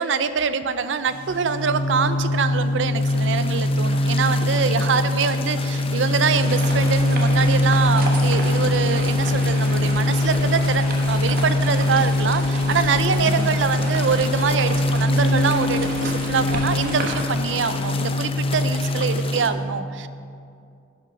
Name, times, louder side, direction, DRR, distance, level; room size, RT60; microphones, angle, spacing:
voice 1, 0.0-20.1, right 6 dB, 85° right, 12 dB, 0.5 m, -24 dB
sound 1, 1.1-19.3, left 1 dB, 50° left, 1.0 m, -22 dB
sound 2, 3.0-19.5, left 4 dB, 30° left, 0.7 m, -35 dB
sound 3, 6.3-17.2, right 2 dB, 55° right, 1.2 m, -33 dB
11.0 x 6.2 x 6.0 m, 2.4 s
head